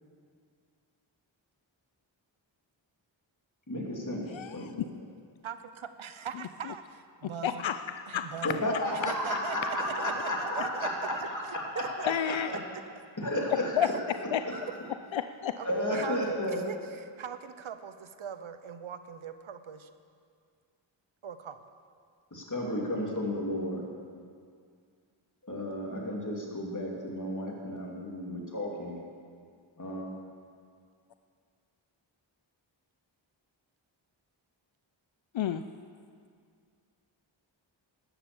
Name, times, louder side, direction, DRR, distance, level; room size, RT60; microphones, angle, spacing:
voice 1, 3.7-4.9 8.4-12.6 13.2-13.9 14.4-14.7 15.6-16.6 22.3-23.8 25.4-29.0 29.8-30.1, left 1 dB, 40° left, -2 dB, 3.1 m, -33 dB
voice 2, 4.3-4.7 6.7-6.8 7.4-8.3 12.1-12.5 13.8-13.9 14.3-14.4 15.1-15.5 35.3-35.6, left 9 dB, 70° left, 9 dB, 0.6 m, -30 dB
voice 3, 5.4-7.7 8.1-8.7 8.9-10.9 11.2-12.6 12.8-12.9 13.8-13.9 14.7-14.8 15.6-19.9 21.2-21.7, right 7 dB, 80° right, 10 dB, 0.8 m, -41 dB
12.5 x 10.0 x 7.0 m, 2.2 s
cardioid pair, 45°, 47 cm